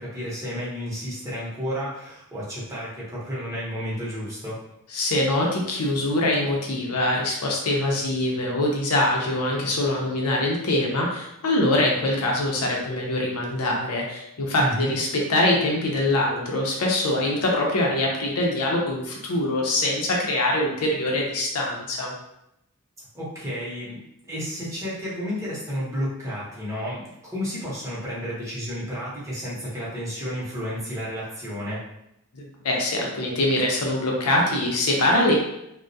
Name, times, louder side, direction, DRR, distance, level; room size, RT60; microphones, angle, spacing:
voice 1, 0.0-4.6 14.6-14.9 23.1-31.8, equal, 15° right, -8 dB, 0.8 m, -31 dB
voice 2, 4.9-22.1 32.3-35.3, left 1 dB, 80° left, -1 dB, 0.6 m, -23 dB
2.2 x 2.1 x 2.6 m, 0.83 s
head